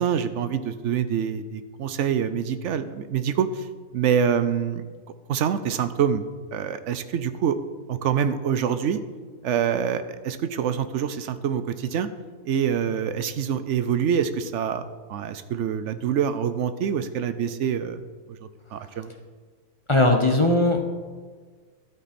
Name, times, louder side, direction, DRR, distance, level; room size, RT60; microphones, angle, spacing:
voice 1, 0.0-3.7 3.9-4.8 5.3-6.2 6.5-7.6 7.9-9.0 9.4-12.1 12.4-18.0 18.4-19.1, right 8 dB, 65° right, 12 dB, 0.9 m, -25 dB
voice 2, 19.9-20.8, left 2 dB, 25° left, 3 dB, 0.9 m, -19 dB
12.5 x 8.3 x 4.3 m, 1.5 s
omnidirectional pair, 1.4 m